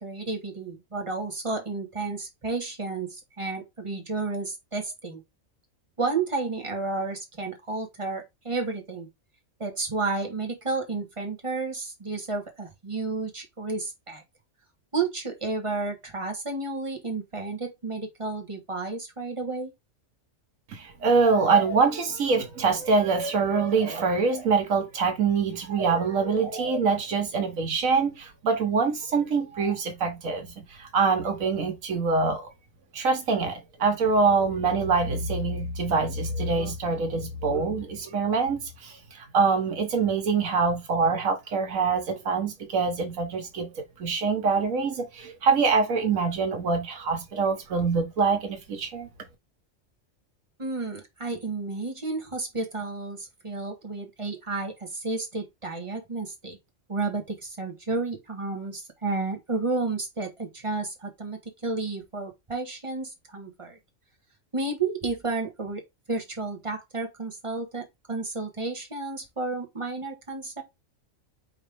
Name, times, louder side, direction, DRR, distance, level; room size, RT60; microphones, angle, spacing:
voice 1, 0.0-5.2 6.0-9.1 9.6-14.2 14.9-19.7 50.6-56.6 56.9-63.8 64.5-65.8 66.1-70.6, right 3 dB, 25° right, 1.2 m, -31 dB
voice 2, 20.7-30.5 30.8-32.5 32.9-43.7 44.0-49.1, right 4 dB, 90° right, 1.6 m, -25 dB
5.1 x 3.1 x 3.4 m
omnidirectional pair, 1.4 m